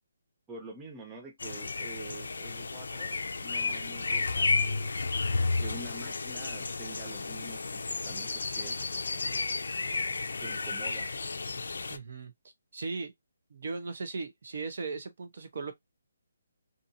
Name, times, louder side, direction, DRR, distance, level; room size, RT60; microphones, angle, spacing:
voice 1, 0.5-4.9 5.6-8.8 10.4-11.1, right 3 dB, 10° right, 0.3 m, -47 dB
sound 1, 1.4-12.0, left 3 dB, 80° left, 0.4 m, -32 dB
voice 2, 11.9-12.3 12.7-13.1 13.5-15.7, right 4 dB, 45° right, 0.7 m, -37 dB
2.6 x 2.5 x 2.7 m
hypercardioid pair, 175°, 0 cm